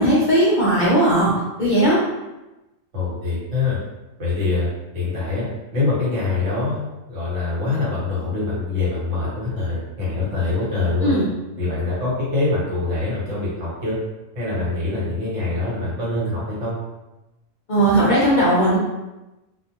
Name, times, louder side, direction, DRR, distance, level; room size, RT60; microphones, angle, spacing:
voice 1, 0.0-1.3 1.6-2.0 11.0-11.3 17.7-18.8, right 1 dB, 55° left, -7 dB, 0.5 m, -17 dB
voice 2, 2.9-3.8 4.2-4.7 4.9-5.5 5.7-11.1 11.6-14.0 14.3-16.8, left 3 dB, 70° right, -7 dB, 1.3 m, -24 dB
2.5 x 2.1 x 2.8 m, 1.0 s
omnidirectional pair, 1.3 m